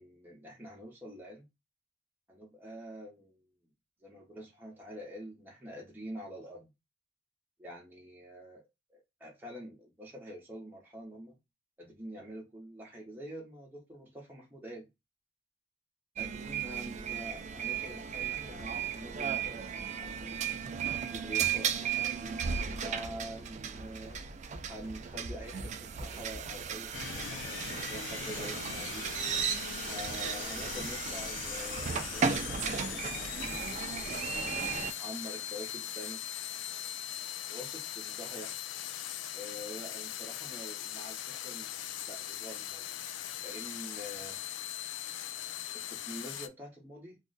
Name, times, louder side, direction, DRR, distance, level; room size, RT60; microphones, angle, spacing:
voice 1, 0.0-1.4 2.3-3.4 4.0-6.7 7.6-8.6 8.9-11.3 11.8-14.8 16.2-20.4 21.0-24.2 24.7-29.0 29.8-33.7 34.0-36.2 37.5-38.6 39.3-42.8 43.4-44.4 45.0-45.1 45.9-47.2, equal, 10° right, 0.7 m, -46 dB
sound 1, 16.2-34.9, right 7 dB, 40° right, 0.3 m, -35 dB
sound 2, 18.1-22.0 22.3-26.7, equal, 60° left, 0.8 m, -50 dB
sound 3, 26.9-46.5, left 11 dB, 90° left, 0.3 m, -40 dB
2.4 x 2.1 x 3.7 m
head